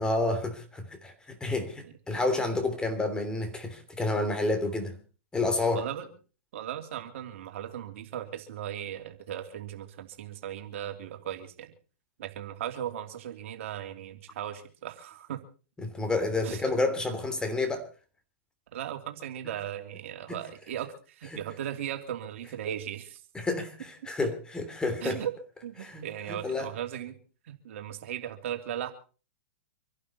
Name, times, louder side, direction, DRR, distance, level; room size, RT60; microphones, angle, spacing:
voice 1, 0.0-4.9 5.3-5.8 15.8-17.9 20.3-20.4 23.3-25.2 25.8-26.7, left 2 dB, 10° left, 3.1 m, -30 dB
voice 2, 5.7-6.1 6.5-11.7 12.2-15.4 16.4-16.6 18.7-23.2 25.0-25.3 25.6-27.2 27.5-28.9, right 10 dB, 65° right, 2.9 m, -37 dB
26.0 x 11.5 x 4.2 m
hypercardioid pair, 120°, 7 cm